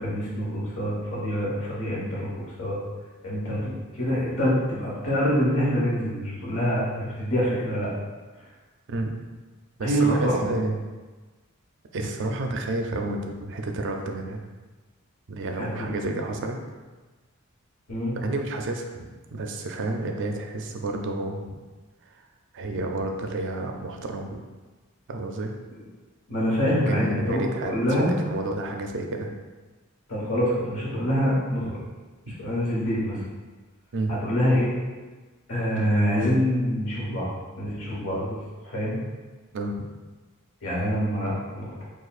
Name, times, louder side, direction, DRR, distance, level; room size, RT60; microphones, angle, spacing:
voice 1, 0.0-2.3 2.6-2.8 3.2-7.9 9.8-10.4 15.6-15.9 17.9-18.2 26.3-28.1 30.1-31.8 32.4-33.2 34.2-34.7 35.5-37.3 37.6-38.4 38.6-39.0 40.6-41.8, equal, 65° left, -6 dB, 1.4 m, -25 dB
voice 2, 9.8-10.9 11.9-14.5 15.3-16.6 18.2-21.6 22.5-24.4 25.1-25.5 26.7-29.3 32.3-32.4 33.9-34.2 37.1-37.2 39.5-39.8, right 2 dB, 60° right, 4 dB, 0.5 m, -30 dB
6.4 x 2.4 x 2.4 m, 1.3 s
head